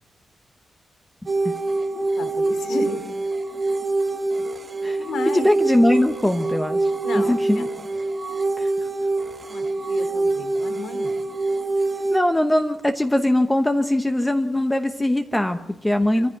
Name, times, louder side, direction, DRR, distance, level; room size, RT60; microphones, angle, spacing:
sound 1, 1.3-12.2, right 2 dB, 25° right, 1.1 m, -25 dB
voice 1, 1.9-3.0 5.1-5.5 7.0-7.7 9.5-11.2 16.0-16.2, left 4 dB, 75° left, 10 dB, 2.8 m, -33 dB
voice 2, 5.3-7.7 8.6-8.7 12.1-16.3, left 1 dB, 5° left, 6 dB, 1.0 m, -21 dB
26.0 x 15.0 x 9.9 m, 0.88 s
wide cardioid pair, 180°, 0 cm